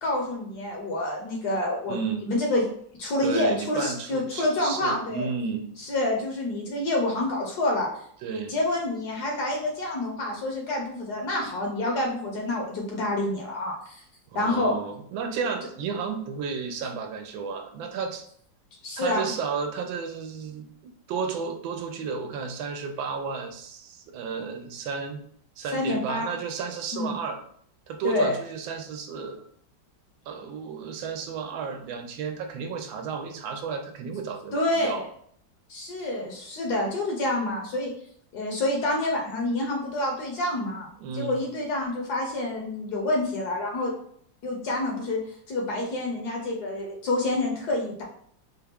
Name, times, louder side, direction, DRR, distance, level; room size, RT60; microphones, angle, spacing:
voice 1, 0.0-2.0 2.3-2.7 3.0-5.3 5.8-7.9 8.5-14.0 14.3-14.7 18.8-19.3 25.7-26.3 26.9-27.1 28.0-28.4 34.5-35.1 35.7-37.9 38.3-43.9 44.4-45.2 45.5-48.0, left 2 dB, 65° left, 0 dB, 1.2 m, -27 dB
voice 2, 1.9-2.3 3.2-5.7 8.2-8.6 14.3-18.3 19.0-25.2 25.6-27.4 27.9-29.4 30.3-35.0 41.0-41.4, right 5 dB, 90° right, 4 dB, 1.3 m, -33 dB
4.2 x 2.3 x 3.4 m, 0.63 s
omnidirectional pair, 2.1 m